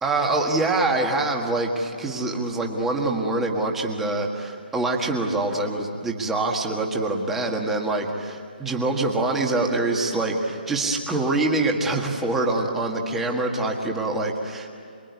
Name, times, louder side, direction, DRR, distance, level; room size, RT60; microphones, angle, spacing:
voice 1, 0.0-14.7, right 2 dB, 5° right, 0 dB, 1.7 m, -25 dB
27.5 x 22.0 x 9.7 m, 2.6 s
hypercardioid pair, 175°, 5 cm